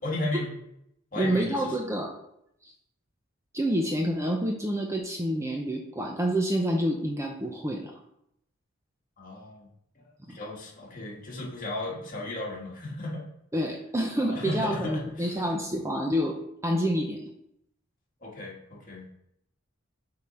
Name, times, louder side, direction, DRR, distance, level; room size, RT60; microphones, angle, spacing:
voice 1, 0.0-0.5 1.1-2.0 9.2-9.7 10.0-13.2 14.3-15.5 18.2-19.1, left 2 dB, 45° left, -3 dB, 1.9 m, -35 dB
voice 2, 1.2-2.2 2.6-2.7 3.5-7.9 10.3-10.4 13.5-16.3 16.6-17.3, equal, 15° right, 1 dB, 0.7 m, -28 dB
7.4 x 3.9 x 4.4 m, 0.77 s
head